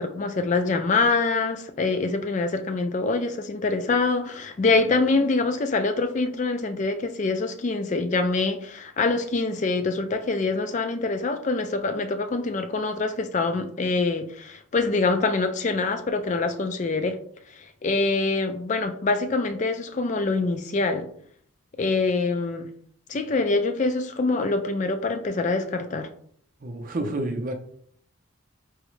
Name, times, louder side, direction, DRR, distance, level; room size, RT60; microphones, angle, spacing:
voice 1, 0.0-17.2 17.6-21.1 21.8-22.7 23.1-26.1, left 3 dB, 35° left, 0.3 m, -25 dB
voice 2, 26.6-27.5, right 2 dB, 40° right, 0.5 m, -29 dB
4.7 x 2.1 x 3.1 m
head